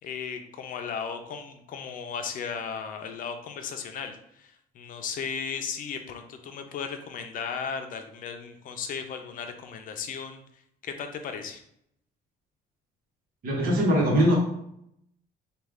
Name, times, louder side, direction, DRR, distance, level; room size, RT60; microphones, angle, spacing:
voice 1, 0.0-10.4 10.8-11.6, left 6 dB, 55° left, 6 dB, 0.5 m, -36 dB
voice 2, 13.4-14.4, equal, 60° right, -1 dB, 1.2 m, -21 dB
3.1 x 2.4 x 3.6 m, 0.74 s
cardioid pair, 110°, 17 cm